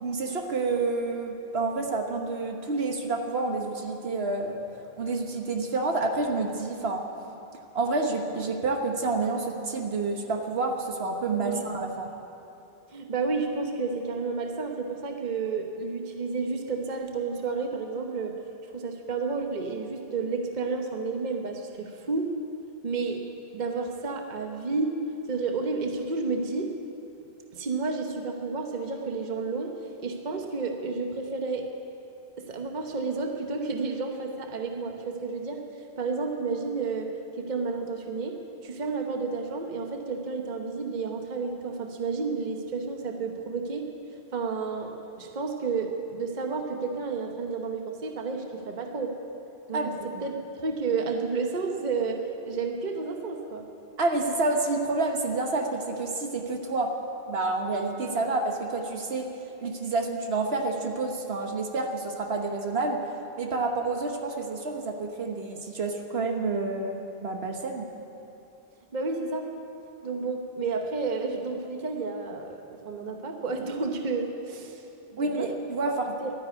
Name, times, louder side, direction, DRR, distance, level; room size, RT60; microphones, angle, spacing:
voice 1, 0.0-4.6 5.0-7.1 7.7-12.1 49.7-50.2 54.0-57.0 57.3-59.3 59.6-63.0 63.4-67.9 75.2-76.2, right 3 dB, 75° right, 3 dB, 1.4 m, -29 dB
voice 2, 12.9-18.3 18.7-22.3 22.8-23.2 23.5-25.0 25.3-26.7 27.5-29.7 30.0-31.6 32.4-35.6 36.0-37.1 37.4-38.4 38.6-43.9 44.3-44.9 45.2-49.1 49.7-49.9 50.2-50.3 50.6-52.2 52.4-53.6 68.9-69.4 70.0-72.6 72.8-74.8 75.1-75.5 76.2-76.3, right 4 dB, 45° right, 3 dB, 1.1 m, -31 dB
12.5 x 10.5 x 9.5 m, 2.8 s
omnidirectional pair, 1.1 m